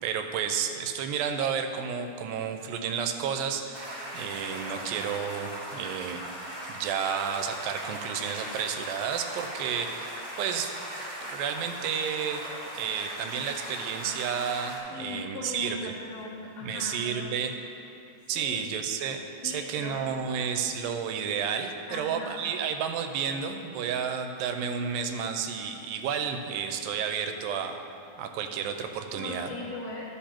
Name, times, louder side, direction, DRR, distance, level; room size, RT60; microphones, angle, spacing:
voice 1, 0.0-6.2 6.7-10.7 11.2-12.4 12.7-15.9 16.6-17.6 18.3-27.8 28.2-29.5, right 7 dB, 85° right, 6 dB, 2.3 m, -31 dB
sound 1, 3.7-14.8, right 1 dB, 40° right, 1.4 m, -39 dB
voice 2, 14.9-17.4 18.3-18.6 19.4-20.1 21.9-22.5 29.1-30.0, left 3 dB, 85° left, -4 dB, 1.4 m, -39 dB
12.5 x 5.1 x 4.4 m, 2.8 s
omnidirectional pair, 4.1 m